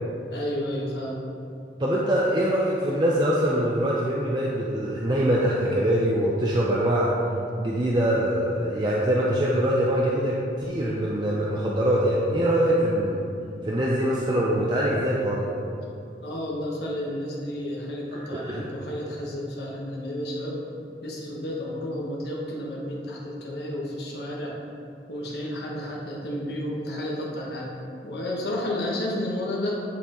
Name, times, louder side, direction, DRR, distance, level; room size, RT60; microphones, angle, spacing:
voice 1, 0.3-1.2 16.2-24.5 25.1-27.7 28.0-29.8, left 1 dB, 65° left, -3 dB, 1.2 m, -31 dB
voice 2, 1.8-7.1 7.6-13.2 13.6-15.5 18.1-18.7, right 1 dB, 25° right, -5 dB, 0.5 m, -23 dB
9.8 x 4.3 x 3.0 m, 2.6 s
head